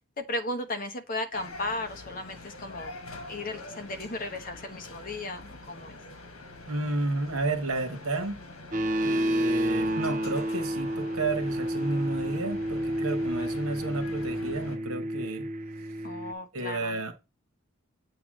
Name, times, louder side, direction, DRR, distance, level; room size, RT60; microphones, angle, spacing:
voice 1, 0.2-2.9 3.3-5.9 16.0-17.0, left 2 dB, 40° left, 1.0 m, -35 dB
sound 1, 1.3-14.8, left 2 dB, 75° left, 1.5 m, -45 dB
voice 2, 6.7-8.4 9.0-15.5 16.5-17.1, right 2 dB, 85° right, 1.4 m, -31 dB
sound 2, 8.7-16.3, right 1 dB, 35° right, 0.6 m, -30 dB
8.0 x 3.1 x 6.3 m
head